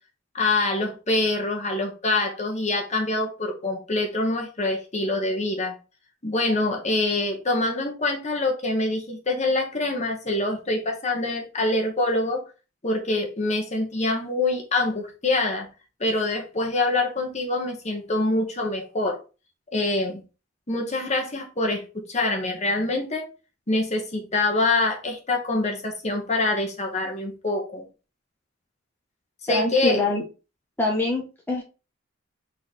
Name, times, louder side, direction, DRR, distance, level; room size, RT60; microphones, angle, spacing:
voice 1, 0.3-5.7 6.2-12.4 12.8-15.7 16.0-19.2 19.7-20.2 20.7-23.3 23.7-27.8 29.4-30.0, left 2 dB, 35° left, 1.2 m, -25 dB
voice 2, 29.5-30.3 30.8-31.6, left 2 dB, 10° left, 0.8 m, -24 dB
4.0 x 3.2 x 4.1 m
head